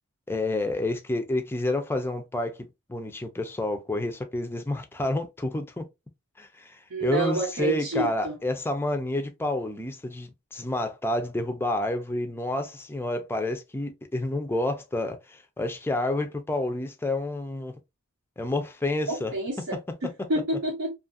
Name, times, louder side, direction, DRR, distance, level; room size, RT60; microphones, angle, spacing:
voice 1, 0.3-5.8 6.4-17.7 18.4-19.3, left 2 dB, 10° left, 0.4 m, -29 dB
voice 2, 6.9-8.3 19.1-20.9, right 2 dB, 80° right, 0.8 m, -29 dB
2.7 x 2.4 x 2.5 m
head